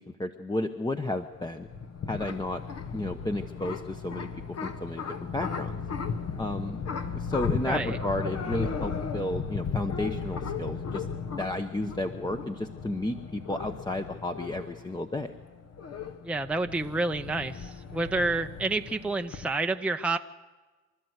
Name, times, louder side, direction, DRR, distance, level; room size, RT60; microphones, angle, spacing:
voice 1, 0.0-1.7 2.1-2.6 2.9-4.3 4.6-5.0 5.3-5.8 6.4-6.9 7.1-11.0 11.4-15.3, left 1 dB, 15° left, 6 dB, 1.0 m, -32 dB
sound 1, 1.3-19.4, left 6 dB, 55° left, 1.3 m, -36 dB
voice 2, 7.6-8.0 16.2-20.2, right 2 dB, 5° right, 5 dB, 0.7 m, -29 dB
26.0 x 12.5 x 8.1 m, 1.3 s
cardioid pair, 90°, 30 cm